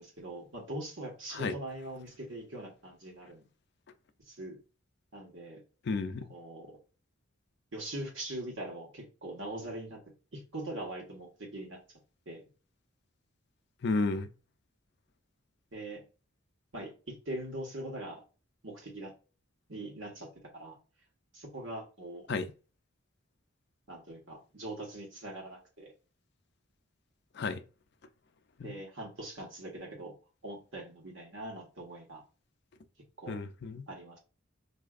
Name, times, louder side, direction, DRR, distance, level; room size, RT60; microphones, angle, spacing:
voice 1, 0.0-3.4 4.3-4.6 5.1-5.6 6.3-6.8 7.7-10.0 10.3-11.8 12.2-12.4 15.7-16.0 16.7-18.2 18.6-19.1 19.7-20.8 21.3-22.3 23.9-25.9 28.6-30.1 30.4-32.2 33.2-33.4 33.9-34.2, right 1 dB, 75° right, 1.5 m, -42 dB
voice 2, 5.9-6.2 13.8-14.3 22.3-22.5 27.4-27.6 28.6-28.7 33.3-33.9, left 3 dB, 55° left, 0.4 m, -32 dB
4.1 x 2.7 x 2.4 m
head